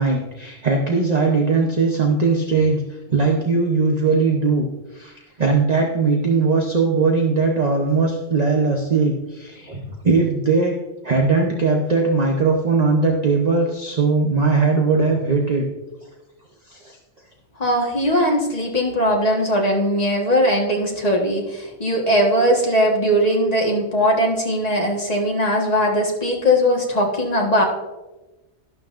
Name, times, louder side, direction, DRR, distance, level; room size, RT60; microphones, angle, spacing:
voice 1, 0.0-2.8 3.1-4.7 4.9-10.7 11.0-15.7 16.7-17.0, right 4 dB, 35° right, 1 dB, 0.9 m, -19 dB
voice 2, 17.6-27.6, equal, 35° left, 0 dB, 1.6 m, -19 dB
12.0 x 11.5 x 2.6 m, 1.1 s
omnidirectional pair, 1.2 m